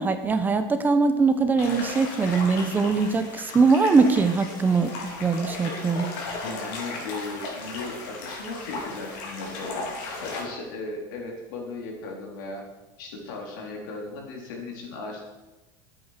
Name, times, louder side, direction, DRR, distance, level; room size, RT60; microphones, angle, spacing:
voice 1, 0.0-4.9 5.2-6.1, right 4 dB, 15° right, 9 dB, 0.9 m, -21 dB
sound 1, 1.6-10.4, left 3 dB, 70° left, 3.9 m, -36 dB
voice 2, 6.3-9.9 10.2-12.6 13.0-15.2, left 3 dB, 85° left, 0 dB, 3.9 m, -36 dB
12.5 x 8.9 x 5.9 m, 1.1 s
supercardioid pair, 145°, 10 cm